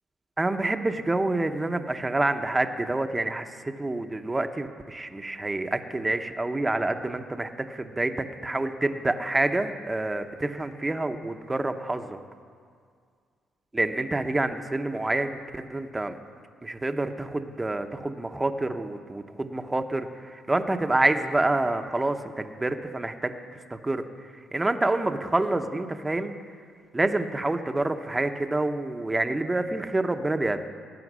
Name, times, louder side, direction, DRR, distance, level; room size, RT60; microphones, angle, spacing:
voice 1, 0.4-12.2 13.7-16.2 16.6-23.4 23.7-24.0 24.5-26.3 26.9-30.7, right 2 dB, 15° right, 7 dB, 0.9 m, -27 dB
18.5 x 9.0 x 6.2 m, 2.1 s
cardioid pair, 90°, 0 cm